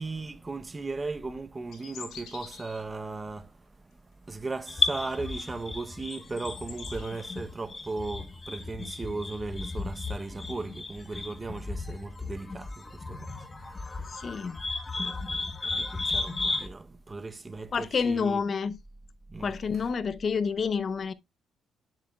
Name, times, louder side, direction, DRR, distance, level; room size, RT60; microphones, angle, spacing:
voice 1, 0.0-3.5 4.3-14.5 15.0-18.4 19.3-19.9, right 3 dB, 25° right, 0.7 m, -37 dB
sound 1, 1.7-3.0 4.4-5.5 5.9-7.3, left 7 dB, 80° left, 3.1 m, -47 dB
sound 2, 4.7-16.7, left 3 dB, 25° left, 1.2 m, -34 dB
voice 2, 14.1-14.6 17.7-18.8 19.4-21.1, left 5 dB, 45° left, 0.6 m, -28 dB
9.9 x 7.3 x 2.3 m
cardioid pair, 90°, 0 cm